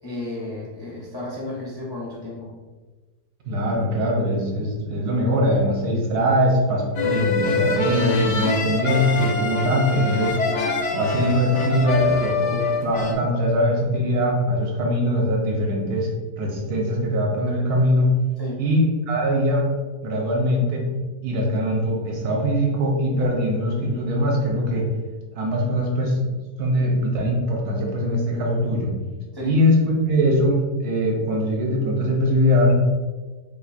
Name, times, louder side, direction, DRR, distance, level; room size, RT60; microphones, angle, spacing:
voice 1, 0.0-2.5 18.4-18.6 29.3-29.5, left 2 dB, 30° left, -6 dB, 0.4 m, -33 dB
voice 2, 3.4-10.4 10.9-16.1 16.4-18.1 18.6-19.7 20.0-20.8 21.2-24.9 25.3-26.3 26.6-28.9 29.4-32.8, equal, 70° right, -1 dB, 1.2 m, -21 dB
sound 1, 7.0-13.2, left 3 dB, 70° left, 0.6 m, -24 dB
2.9 x 2.4 x 4.1 m, 1.3 s
omnidirectional pair, 1.8 m